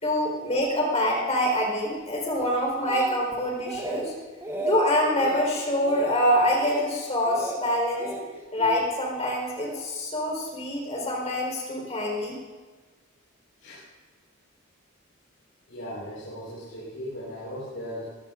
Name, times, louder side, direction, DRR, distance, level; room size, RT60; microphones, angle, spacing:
voice 1, 0.0-4.1 4.6-8.1 8.5-12.3, left 1 dB, 30° left, -1 dB, 4.3 m, -25 dB
Speech, 2.4-3.4 3.7-4.1 4.4-4.8 5.2-5.5 5.8-6.2 6.5-6.8 7.3-7.6 8.0-8.8 9.6-9.8, right 1 dB, 15° right, 1.3 m, -33 dB
voice 2, 15.7-18.1, equal, 85° left, -9 dB, 4.8 m, -37 dB
21.5 x 16.0 x 2.6 m, 1.3 s
head